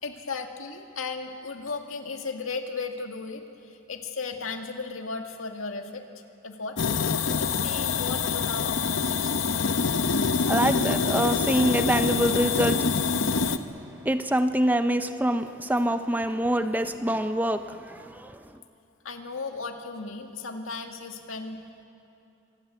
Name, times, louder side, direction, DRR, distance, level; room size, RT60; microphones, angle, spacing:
voice 1, 0.0-6.1 6.4-9.3 19.0-21.6, left 4 dB, 90° left, 4 dB, 2.1 m, -36 dB
sound 1, 6.8-13.6, left 5 dB, 70° left, 0.9 m, -25 dB
voice 2, 10.4-12.9 14.0-18.4, right 1 dB, 10° right, 9 dB, 0.6 m, -25 dB
25.5 x 20.5 x 8.4 m, 2.8 s
head